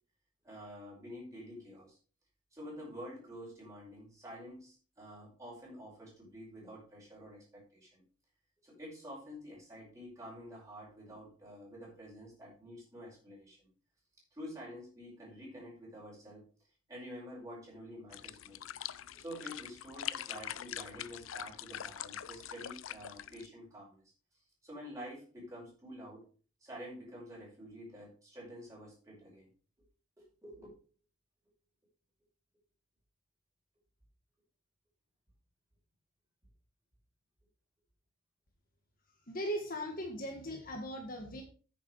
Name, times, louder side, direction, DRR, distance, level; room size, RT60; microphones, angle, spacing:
voice 1, 0.4-2.0 2.5-8.0 8.6-13.7 14.3-16.5 16.9-18.6 19.1-24.0 24.3-26.2 26.6-29.5 30.2-30.8, equal, 15° right, -5 dB, 5.6 m, -49 dB
sound 1, 18.1-23.5, left 11 dB, 70° left, 0.5 m, -43 dB
voice 2, 39.3-41.4, equal, 40° left, 2 dB, 1.7 m, -38 dB
9.4 x 7.1 x 4.8 m, 0.39 s
head